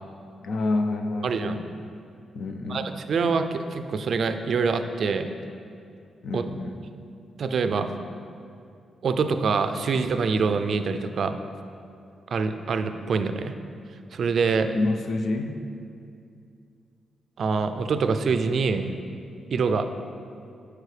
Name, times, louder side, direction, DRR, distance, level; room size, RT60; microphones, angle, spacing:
voice 1, 0.4-1.6 2.3-2.9 6.2-6.8 14.6-15.6, left 2 dB, 65° left, 6 dB, 0.5 m, -28 dB
voice 2, 1.2-1.6 2.7-5.3 6.3-6.4 7.4-7.9 9.0-11.4 12.3-13.5 14.1-14.7 17.4-18.9 19.5-19.8, right 5 dB, 60° right, 8 dB, 0.3 m, -25 dB
8.2 x 4.8 x 3.3 m, 2.4 s
cardioid pair, 85°, 0 cm